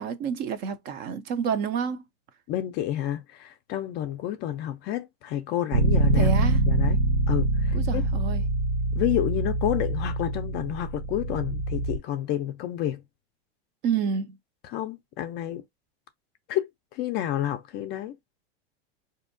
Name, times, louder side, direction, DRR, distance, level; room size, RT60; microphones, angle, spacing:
voice 1, 0.0-2.0 6.1-6.6 7.7-8.4 13.8-14.3, right 6 dB, 35° right, 0.4 m, -29 dB
voice 2, 2.5-6.3 6.7-7.0 7.3-8.0 8.9-13.0 14.6-15.6 16.5-18.2, left 12 dB, 30° left, 0.4 m, -30 dB
Bass guitar, 5.7-12.0, right 2 dB, 70° right, 1.0 m, -24 dB
4.2 x 2.7 x 2.5 m
supercardioid pair, 145°, 33 cm